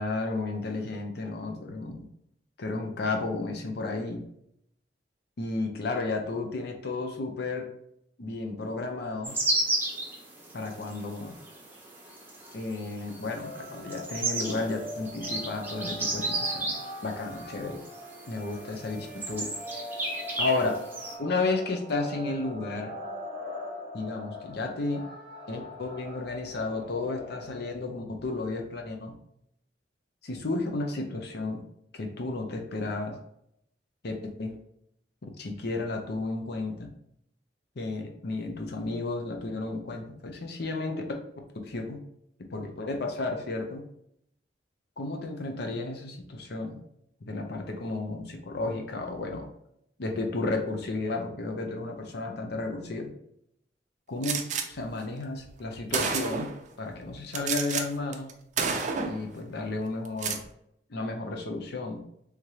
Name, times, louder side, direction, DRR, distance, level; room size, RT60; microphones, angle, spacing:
voice 1, 0.0-2.1 2.6-4.3 5.4-7.7 8.2-9.4 10.5-11.4 12.5-16.8 17.0-17.8 18.3-19.5 20.4-20.8 21.2-22.9 23.9-25.0 25.5-29.1 30.2-31.6 31.9-33.2 34.0-34.6 35.4-36.9 37.8-41.0 41.6-42.0 42.5-43.8 45.0-46.8 47.2-49.5 50.0-53.1 54.1-56.5 56.8-58.3 59.1-60.4 60.9-62.0, left 3 dB, 65° left, 3 dB, 0.6 m, -32 dB
sound 1, 9.2-21.2, right 2 dB, 10° right, 0.7 m, -34 dB
sound 2, 13.4-27.8, left 1 dB, 85° left, 1.4 m, -42 dB
Gunshot gunfire, 54.2-54.7 55.5-55.6 55.9-56.6 57.3-57.8 58.1-58.3 58.6-59.2 60.1-60.4, right 5 dB, 45° right, 0.4 m, -29 dB
3.5 x 3.2 x 2.8 m, 0.74 s
head